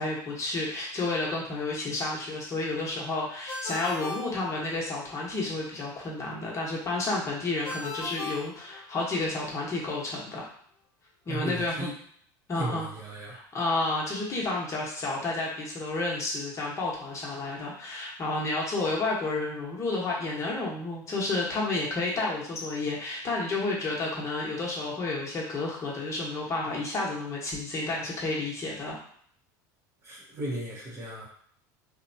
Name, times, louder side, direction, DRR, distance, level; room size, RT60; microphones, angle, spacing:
voice 1, 0.0-10.5 11.3-11.9 12.5-12.9 13.3-29.0, left 2 dB, 30° left, -4 dB, 1.0 m, -31 dB
Ringtone, 3.5-5.1 7.6-9.3, left 3 dB, 45° left, 1.1 m, -38 dB
voice 2, 11.3-11.9 12.5-13.4 30.0-31.3, right 2 dB, 25° right, -3 dB, 0.8 m, -35 dB
2.7 x 2.2 x 2.7 m, 0.62 s
supercardioid pair, 110°, 10 cm